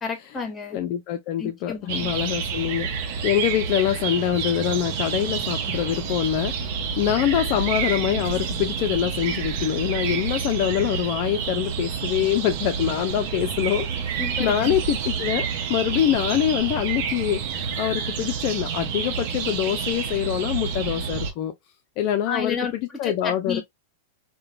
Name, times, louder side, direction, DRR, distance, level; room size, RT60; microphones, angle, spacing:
voice 1, 0.0-0.8 1.4-2.1 14.2-14.7 22.3-22.7 23.0-23.6, left 5 dB, 20° left, 0.9 m, -31 dB
voice 2, 0.7-2.9 3.2-6.5 7.0-17.4 17.8-21.5 22.0-23.6, left 11 dB, 50° left, 0.3 m, -24 dB
sound 1, 1.9-21.3, right 6 dB, 60° right, 0.6 m, -29 dB
2.9 x 2.1 x 2.4 m
hypercardioid pair, 110°, 0 cm